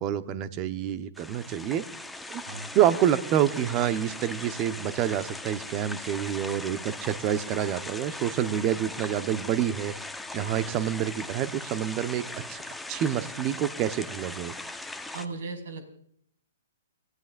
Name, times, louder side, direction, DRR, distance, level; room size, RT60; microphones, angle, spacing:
voice 1, 0.0-1.8 2.3-2.4 2.7-9.9 10.3-14.5, right 10 dB, 30° right, 11 dB, 1.1 m, -27 dB
sound 1, 1.2-15.3, left 2 dB, 5° left, 1.0 m, -39 dB
voice 2, 15.1-15.9, right 3 dB, 60° right, 5 dB, 5.0 m, -37 dB
29.5 x 16.0 x 2.6 m, 0.67 s
figure-of-eight pair, 120°, 0 cm